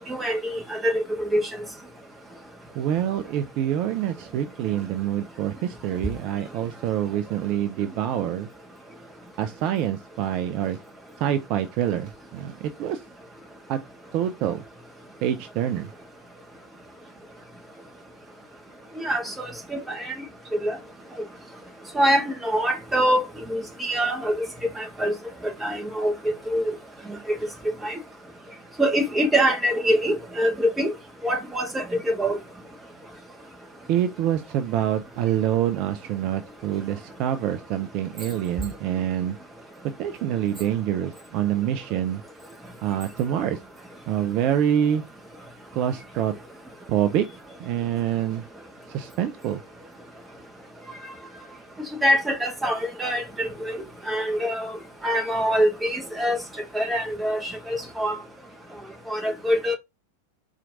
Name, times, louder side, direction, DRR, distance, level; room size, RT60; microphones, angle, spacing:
voice 1, 0.1-1.0 1.3-1.5 19.0-19.3 19.7-20.1 20.6-20.8 21.9-23.2 23.5-24.4 24.8-25.1 25.6-26.7 27.8-27.9 28.8-30.9 31.2-32.4 52.0-53.5 54.1-54.7 55.0-56.4 56.7-58.2 59.1-59.8, equal, 10° right, 1.0 m, -24 dB
voice 2, 2.7-8.5 9.4-10.8 11.2-13.0 13.7-13.8 14.1-14.6 15.2-15.9 33.9-39.4 40.0-42.2 42.8-43.6 44.1-45.0 45.7-46.3 46.9-47.3 47.6-48.4 48.9-49.6, right 10 dB, 40° right, 0.4 m, -26 dB
4.4 x 2.5 x 3.8 m
figure-of-eight pair, 90°, 0 cm